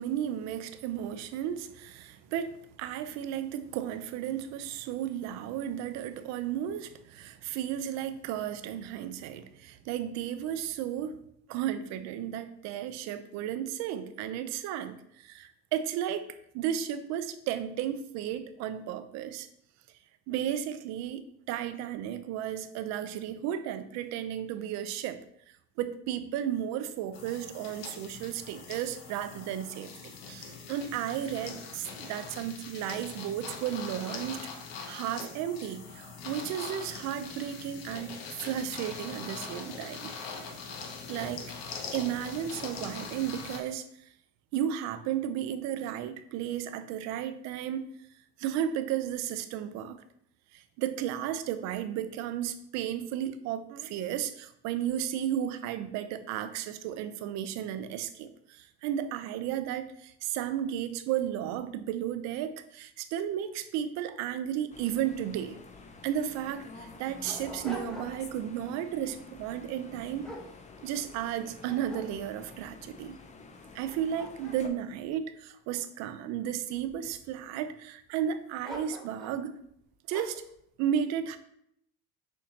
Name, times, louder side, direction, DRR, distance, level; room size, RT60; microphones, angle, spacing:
voice 1, 0.0-11.2 11.5-16.3 16.5-19.5 20.3-25.2 25.8-34.4 34.9-40.1 41.1-41.5 41.9-43.8 44.5-47.9 48.4-50.0 50.5-65.6 66.0-70.3 70.8-73.2 73.7-79.6 80.1-80.4 80.8-81.4, right 10 dB, 65° right, 11 dB, 0.5 m, -34 dB
sound 1, 27.1-43.6, left 5 dB, 80° left, 0.8 m, -42 dB
sound 2, 64.7-74.7, left 4 dB, 25° left, 0.5 m, -49 dB
Dog, 66.1-66.2 66.8-68.4 68.8-69.1 69.7-71.2 71.6-72.6 73.2-73.3 73.7-76.1 76.7-77.3 78.6-79.4 80.1-80.5, right 1 dB, ahead, 1.0 m, -46 dB
6.4 x 2.8 x 2.7 m, 0.72 s
supercardioid pair, 90°, 30 cm